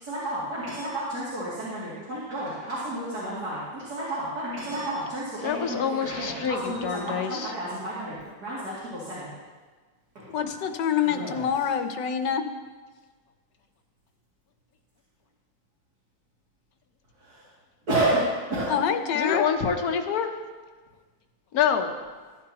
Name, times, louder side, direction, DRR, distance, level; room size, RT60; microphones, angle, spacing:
voice 1, 0.0-8.1 8.4-9.3 10.1-10.6 11.0-11.4 17.2-17.4 17.9-18.2 18.5-18.7, right 1 dB, 60° right, -10 dB, 3.1 m, -31 dB
voice 2, 5.4-7.5 19.1-20.3 21.5-21.9, left 7 dB, 60° left, 5 dB, 1.2 m, -26 dB
voice 3, 10.3-12.5 18.7-19.5, left 8 dB, 85° left, 7 dB, 1.5 m, -26 dB
14.5 x 9.3 x 2.9 m, 1.4 s
omnidirectional pair, 1.9 m